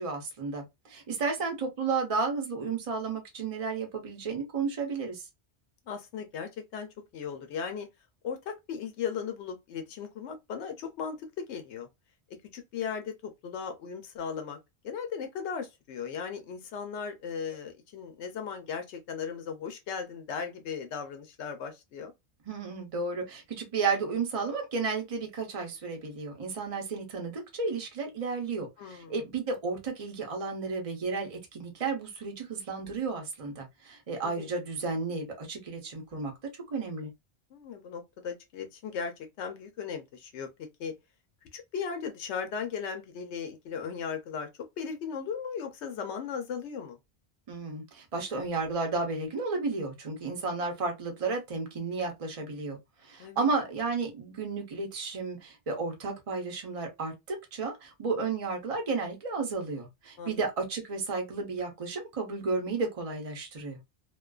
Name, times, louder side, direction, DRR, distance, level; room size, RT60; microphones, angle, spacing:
voice 1, 0.0-5.2 22.5-36.3 36.7-37.1 47.5-63.8, right 4 dB, 35° right, 0.7 m, -33 dB
voice 2, 5.9-6.9 7.1-7.9 8.2-11.9 12.5-14.6 14.8-22.1 28.8-29.2 34.2-34.5 37.5-40.5 40.8-40.9 41.5-44.5 44.8-47.0 53.2-53.5 60.2-60.4, left 6 dB, 80° left, 0.9 m, -37 dB
2.4 x 2.3 x 2.3 m
omnidirectional pair, 1.2 m